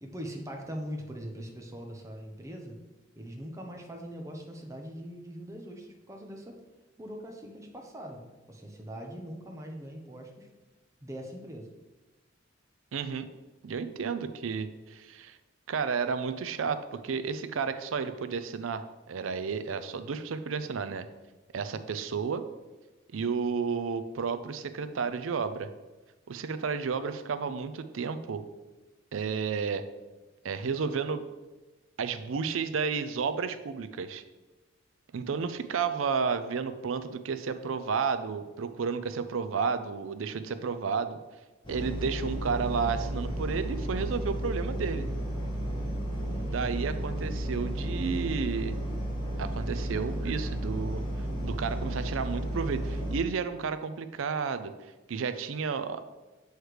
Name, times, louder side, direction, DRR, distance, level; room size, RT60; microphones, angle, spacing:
voice 1, 0.0-2.8 3.1-6.6 7.0-8.2 8.5-10.5 11.0-11.7 46.2-46.7, equal, 15° right, 2 dB, 0.8 m, -41 dB
voice 2, 12.9-13.3 13.6-15.4 15.7-21.1 21.5-22.4 23.1-25.7 26.3-28.4 29.1-29.8 30.4-31.3 32.0-34.2 35.1-41.2 41.7-45.1 46.4-48.8 49.4-51.0 51.4-54.7 55.1-56.0, right 5 dB, 90° right, 11 dB, 0.5 m, -32 dB
sound 1, 41.6-53.1, right 1 dB, 25° left, 1.2 m, -33 dB
8.0 x 3.2 x 4.8 m, 1.1 s
head